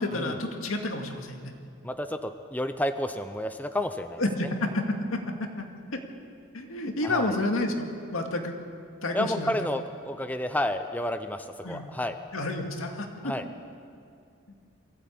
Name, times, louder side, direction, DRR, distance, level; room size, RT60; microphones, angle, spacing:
voice 1, 0.0-1.5 4.2-5.7 5.9-6.0 6.5-7.9 8.1-8.6 9.0-9.5 11.6-11.8 12.3-13.3, left 2 dB, 85° left, 3 dB, 2.3 m, -30 dB
voice 2, 1.8-4.2 7.0-7.3 9.1-12.2 13.2-13.5, left 1 dB, 10° left, 8 dB, 0.6 m, -31 dB
23.5 x 15.5 x 8.7 m, 2.4 s
head